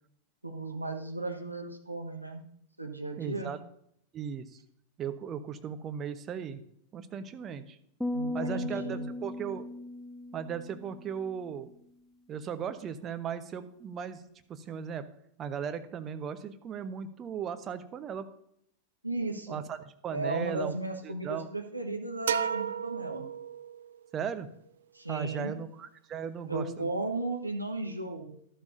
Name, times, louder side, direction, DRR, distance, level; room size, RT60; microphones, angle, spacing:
voice 1, 0.4-2.4 2.8-3.5 8.1-9.1 19.0-19.6 20.1-23.3 24.9-25.5 26.5-28.4, right 2 dB, 85° right, 3 dB, 1.2 m, -35 dB
voice 2, 3.2-3.6 4.1-4.5 5.0-6.6 6.9-7.8 8.3-9.6 10.3-11.7 12.3-14.2 14.5-15.0 15.4-18.3 19.5-19.8 20.0-20.8 21.0-21.5 24.1-24.5 25.1-26.9, right 7 dB, 25° right, 9 dB, 0.9 m, -37 dB
sound 1, 8.0-11.4, left 2 dB, ahead, 0.5 m, -37 dB
sound 2, 22.3-24.0, right 8 dB, 65° right, 0.4 m, -33 dB
12.5 x 11.5 x 2.7 m, 0.70 s
figure-of-eight pair, 90°, 0 cm